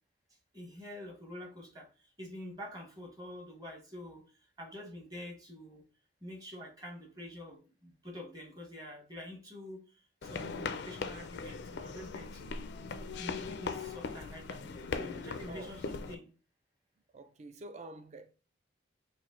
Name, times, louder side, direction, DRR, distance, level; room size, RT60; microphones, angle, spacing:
voice 1, 0.5-4.2 4.6-5.8 6.2-12.6 13.2-16.3, left 1 dB, 20° right, 1.0 m, -47 dB
sound 1, 10.2-16.2, left 4 dB, 60° left, 0.4 m, -40 dB
voice 2, 17.1-18.3, right 2 dB, 35° right, 0.4 m, -47 dB
4.6 x 2.1 x 3.6 m
head